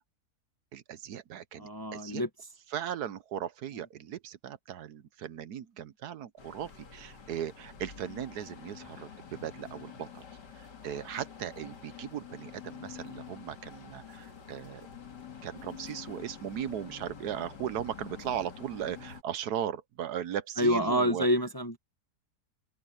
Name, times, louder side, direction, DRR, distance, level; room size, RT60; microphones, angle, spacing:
voice 1, 0.7-2.2 2.7-10.2 10.8-14.8 15.4-21.3, right 10 dB, 75° right, 1.3 m, -37 dB
voice 2, 1.6-2.3 20.6-21.8, equal, 15° left, 0.9 m, -27 dB
sound 1, 6.4-19.2, left 7 dB, 90° left, 2.6 m, -48 dB
omnidirectional pair, 1.8 m